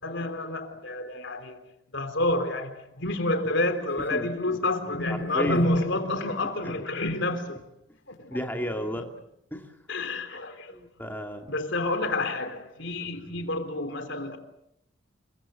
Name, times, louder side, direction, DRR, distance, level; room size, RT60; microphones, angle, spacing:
voice 1, 0.0-1.6 1.9-7.7 8.1-8.4 9.9-10.7 11.5-14.4, left 2 dB, 65° left, 3.5 m, -29 dB
voice 2, 8.3-9.1 9.5-9.7 10.7-11.5, equal, 10° left, 2.4 m, -32 dB
28.5 x 23.0 x 7.6 m
head